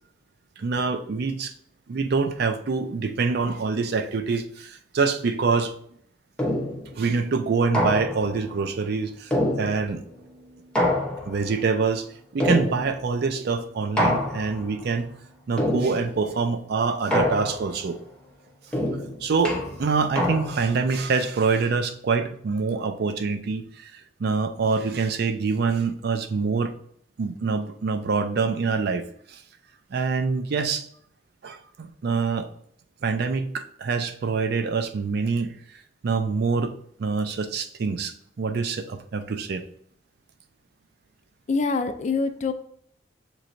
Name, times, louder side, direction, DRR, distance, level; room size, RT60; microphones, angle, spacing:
voice 1, 0.6-1.5 1.9-5.7 6.9-10.0 11.3-12.1 12.3-15.1 15.5-18.0 19.2-26.7 27.2-29.0 29.3-29.4 29.9-30.8 31.4-32.5 33.0-35.5 36.0-36.7 37.0-39.6, right 4 dB, 60° right, 8 dB, 0.4 m, -25 dB
sound 1, 6.4-6.9 7.7-8.4 9.3-10.1 10.7-11.5 12.4-13.1 14.0-14.7 15.6-16.2 17.1-17.8 18.7-20.8, left 1 dB, 5° left, 0.8 m, -26 dB
voice 2, 41.5-42.5, left 4 dB, 40° left, 9 dB, 0.3 m, -25 dB
6.5 x 3.1 x 2.6 m, 0.66 s
head